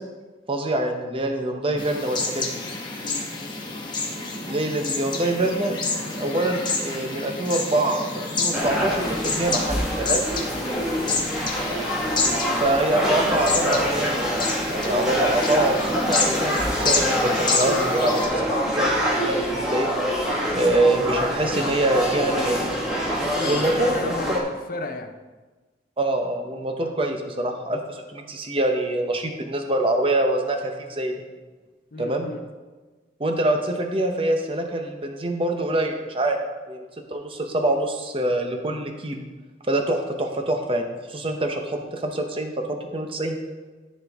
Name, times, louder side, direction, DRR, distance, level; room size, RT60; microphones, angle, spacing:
voice 1, 0.5-2.6 4.4-10.2 12.5-14.2 14.7-19.9 20.5-22.7 23.5-24.0 24.3-24.4 26.0-31.1 32.0-32.3 33.2-36.4 36.7-39.2 39.7-43.4, right 1 dB, 30° right, 4 dB, 0.7 m, -25 dB
sound 1, 1.8-18.3, left 3 dB, 25° left, 1.1 m, -29 dB
sound 2, 8.5-24.4, equal, 5° right, 1.4 m, -25 dB
voice 2, 23.2-25.1 26.8-26.9 31.9-32.4, left 2 dB, 50° left, 6 dB, 0.7 m, -35 dB
13.0 x 4.4 x 3.5 m, 1.3 s
head